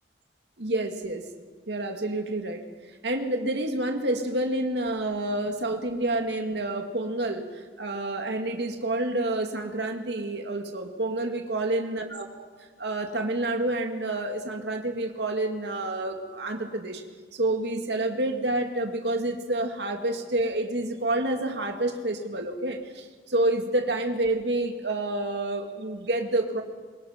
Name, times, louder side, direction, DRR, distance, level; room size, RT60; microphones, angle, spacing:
voice 1, 0.6-1.2 1.7-2.6 3.0-12.3 12.8-17.0 17.3-26.6, right 2 dB, 70° right, 4 dB, 2.2 m, -28 dB
24.0 x 22.0 x 5.9 m, 1.5 s
head